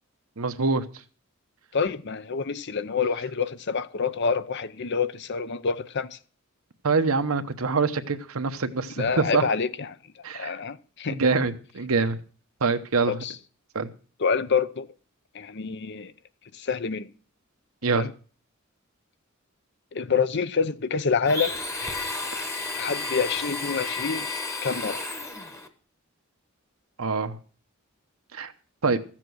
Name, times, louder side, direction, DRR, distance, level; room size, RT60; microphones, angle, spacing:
voice 1, 0.4-0.8 6.8-9.5 10.2-10.5 11.1-12.2 12.6-13.2 13.7-13.9 17.8-18.1 27.0-27.4 28.3-28.5 28.8-29.0, right 4 dB, 85° right, 1.0 m, -25 dB
voice 2, 1.7-6.2 9.0-10.0 10.3-11.2 13.1-13.4 14.2-14.9 15.3-16.1 16.5-17.1 17.9-18.1 19.9-21.6 22.8-24.3 24.6-25.0, left 5 dB, 55° left, 0.7 m, -27 dB
Domestic sounds home sounds, 21.2-25.7, left 3 dB, 15° left, 1.1 m, -32 dB
14.5 x 7.5 x 6.2 m
head